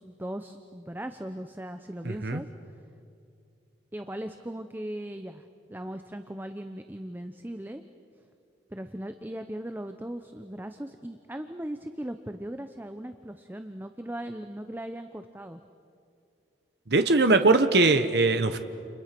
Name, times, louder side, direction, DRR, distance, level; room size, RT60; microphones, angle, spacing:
voice 1, 0.0-2.5 3.9-5.4 5.7-7.8 8.7-15.6, right 1 dB, 10° right, 8 dB, 0.7 m, -38 dB
voice 2, 2.0-2.4 16.9-18.6, right 3 dB, 65° right, 8 dB, 1.3 m, -21 dB
30.0 x 29.5 x 6.1 m, 2.5 s
head